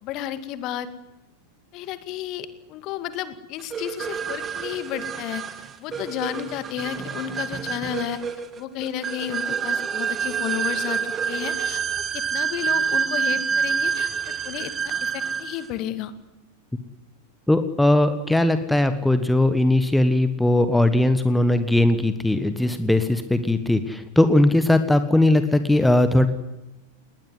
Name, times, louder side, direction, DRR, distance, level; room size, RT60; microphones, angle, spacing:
voice 1, 0.0-0.9 1.7-5.4 5.8-8.2 8.6-16.1, left 11 dB, 40° left, 12 dB, 2.2 m, -32 dB
sound 1, 3.7-15.7, right 7 dB, 20° right, 2.0 m, -27 dB
voice 2, 17.5-26.3, left 1 dB, 5° left, 10 dB, 1.4 m, -19 dB
20.0 x 19.5 x 9.7 m, 0.99 s
figure-of-eight pair, 90°, 0 cm